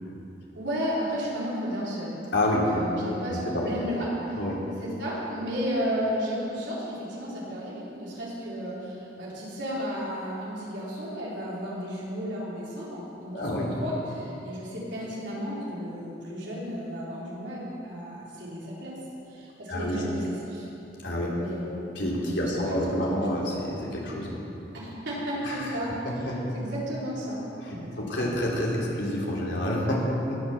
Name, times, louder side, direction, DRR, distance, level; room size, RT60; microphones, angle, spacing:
voice 1, 0.5-2.2 2.5-4.4 4.8-19.0 19.3-20.7 21.4-21.8 22.3-22.8 23.0-23.3 24.7-25.9 26.2-26.3 26.5-27.4 27.7-28.2, equal, 75° right, -6 dB, 3.9 m, -33 dB
voice 2, 2.3-2.6 3.5-3.6 4.4-4.5 13.3-13.7 19.7-20.0 21.0-21.3 21.9-24.4 25.4-25.7 26.0-26.4 28.0-30.0 30.3-30.4, left 1 dB, 75° left, -4 dB, 3.3 m, -28 dB
19.0 x 6.6 x 7.0 m, 3.0 s
head